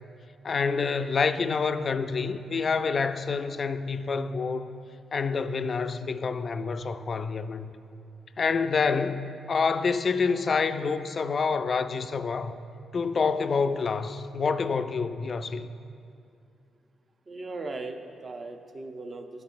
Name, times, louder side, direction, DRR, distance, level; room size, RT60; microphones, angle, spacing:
voice 1, 0.4-4.7 5.1-7.7 8.4-12.5 12.9-15.7, left 5 dB, 45° left, 0.3 m, -27 dB
voice 2, 17.3-19.4, right 3 dB, 40° right, 0.7 m, -38 dB
13.5 x 5.3 x 2.6 m
cardioid pair, 90°, 0 cm